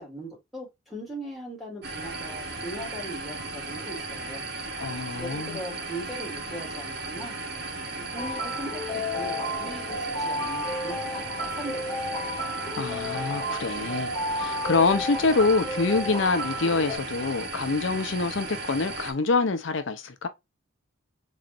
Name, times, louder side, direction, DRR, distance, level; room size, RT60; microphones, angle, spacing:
voice 1, 0.0-4.4 5.2-7.3 7.9-12.2, right 1 dB, ahead, 2.3 m, -40 dB
sound 1, 1.8-19.1, right 3 dB, 50° right, 0.9 m, -36 dB
voice 2, 4.8-5.6 12.7-20.3, left 3 dB, 65° left, 0.6 m, -26 dB
sound 2, 8.2-17.0, left 1 dB, 20° left, 2.0 m, -32 dB
4.0 x 3.2 x 2.4 m
head